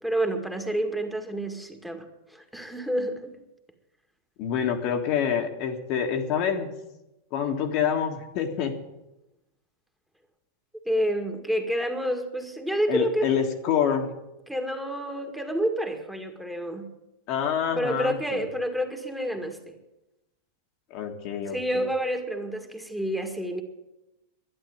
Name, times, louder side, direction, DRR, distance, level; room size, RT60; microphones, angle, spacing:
voice 1, 0.0-2.1 2.3-3.3 10.9-13.3 14.5-16.9 17.8-19.8 21.5-23.6, equal, ahead, 4 dB, 2.0 m, -29 dB
voice 2, 4.4-6.7 7.3-8.8 12.9-14.1 17.3-18.5 20.9-21.9, left 8 dB, 45° left, 3 dB, 1.8 m, -27 dB
11.5 x 11.0 x 8.9 m, 0.93 s
figure-of-eight pair, 90°, 0 cm